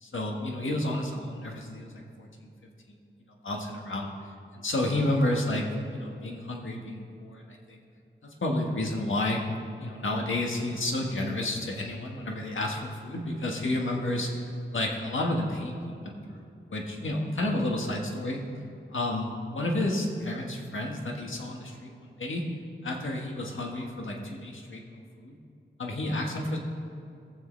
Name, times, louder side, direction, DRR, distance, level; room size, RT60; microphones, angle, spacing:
voice 1, 0.0-1.9 2.2-2.5 3.4-4.1 4.5-5.7 5.9-7.8 8.2-9.4 9.8-16.4 16.7-18.4 18.9-22.4 22.8-24.8 25.2-25.4 25.8-26.6, left 1 dB, 70° left, 0 dB, 1.6 m, -31 dB
19.5 x 7.7 x 3.3 m, 2.5 s
cardioid pair, 45°, 21 cm